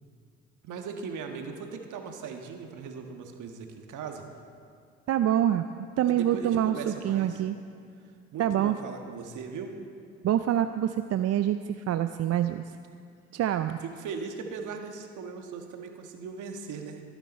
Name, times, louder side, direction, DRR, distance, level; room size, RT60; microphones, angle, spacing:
voice 1, 0.6-4.2 6.1-7.4 8.3-9.8 13.8-17.0, right 5 dB, 65° right, 4 dB, 1.5 m, -39 dB
voice 2, 5.1-5.6 6.0-7.6 8.4-8.7 10.2-12.6 13.3-13.8, right 11 dB, 50° right, 10 dB, 0.5 m, -26 dB
23.5 x 9.0 x 4.3 m, 2.3 s
hypercardioid pair, 60°, 33 cm